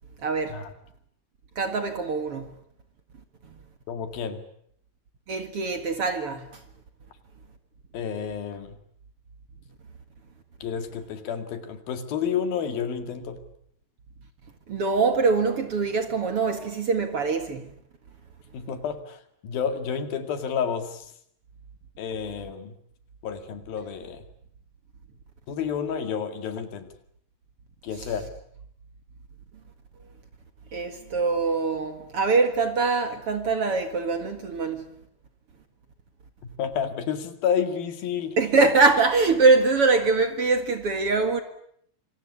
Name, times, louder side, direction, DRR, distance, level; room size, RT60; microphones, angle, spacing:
voice 1, 0.2-0.6 1.6-2.5 5.3-6.5 14.7-17.6 30.7-34.9 38.4-41.4, right 4 dB, 45° right, 2.3 m, -23 dB
voice 2, 3.9-4.4 7.9-8.8 10.6-13.4 18.5-21.1 22.0-22.7 23.2-24.2 25.5-26.9 27.8-28.3 36.6-38.4, left 7 dB, 75° left, 4.0 m, -30 dB
27.0 x 26.0 x 8.4 m
omnidirectional pair, 4.2 m